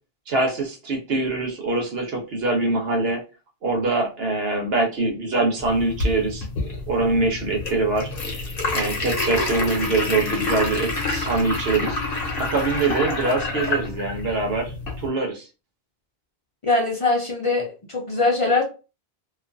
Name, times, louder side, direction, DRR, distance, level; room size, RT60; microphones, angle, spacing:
voice 1, 0.3-3.2 3.6-6.5 6.9-8.1 8.7-12.0 12.4-15.4, right 3 dB, 75° right, 1 dB, 1.1 m, -24 dB
sound 1, 5.6-15.1, left 2 dB, 65° left, 1.0 m, -28 dB
voice 2, 16.6-18.6, left 3 dB, 40° left, -1 dB, 0.6 m, -22 dB
2.5 x 2.3 x 2.5 m, 0.32 s
omnidirectional pair, 1.0 m